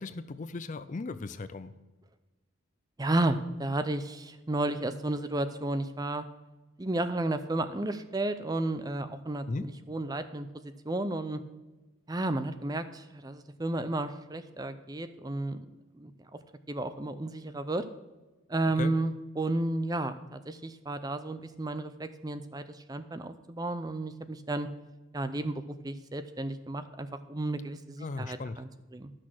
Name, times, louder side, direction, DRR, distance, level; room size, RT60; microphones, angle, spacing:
voice 1, 0.0-1.7 9.5-9.7 18.8-18.9 28.0-28.6, left 3 dB, 35° left, 13 dB, 0.4 m, -36 dB
voice 2, 3.0-6.2 6.8-11.4 12.1-15.7 16.0-16.1 16.7-17.8 18.5-24.7 25.1-29.1, right 2 dB, 20° right, 11 dB, 0.5 m, -32 dB
12.0 x 6.3 x 6.0 m, 1.2 s
head